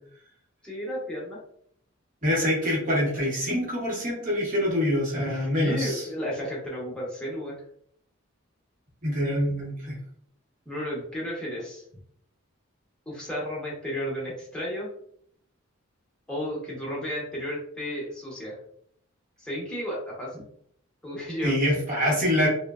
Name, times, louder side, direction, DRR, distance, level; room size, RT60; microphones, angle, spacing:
voice 1, 0.6-1.4 5.5-7.6 10.7-11.8 13.1-14.9 16.3-18.6 19.4-20.4 21.0-21.5, equal, 5° left, -5 dB, 0.8 m, -33 dB
voice 2, 2.2-6.0 9.0-10.0 21.4-22.5, left 1 dB, 40° right, -2 dB, 0.9 m, -25 dB
3.0 x 2.0 x 2.3 m, 0.65 s
head